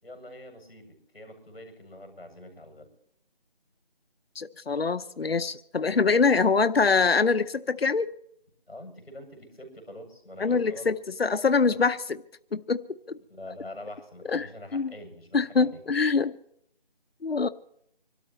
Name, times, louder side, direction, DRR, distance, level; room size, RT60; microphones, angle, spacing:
voice 1, 0.0-2.9 8.7-10.9 11.6-11.8 13.3-15.8, left 1 dB, ahead, -20 dB, 6.0 m, -44 dB
voice 2, 4.4-8.1 10.4-12.2 12.5-12.8 13.1-13.2 14.3-14.5 14.7-14.9 15.3-16.4 17.2-17.5, left 4 dB, 90° left, 11 dB, 0.9 m, -24 dB
25.5 x 13.5 x 3.1 m, 0.71 s
figure-of-eight pair, 180°, 29 cm